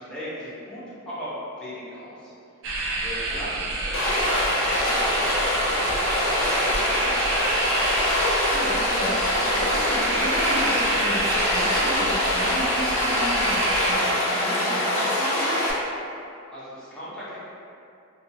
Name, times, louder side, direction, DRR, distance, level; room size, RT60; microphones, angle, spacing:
voice 1, 0.0-2.3 3.0-4.2 4.5-7.8 16.5-17.4, equal, 5° left, -12 dB, 0.9 m, -37 dB
sound 1, 2.6-13.9, right 2 dB, 65° right, 0.4 m, -29 dB
Stream, 3.9-15.7, left 1 dB, 65° left, 0.6 m, -24 dB
voice 2, 8.5-15.6, equal, 45° right, -13 dB, 0.9 m, -34 dB
2.7 x 2.7 x 2.7 m, 2.5 s
head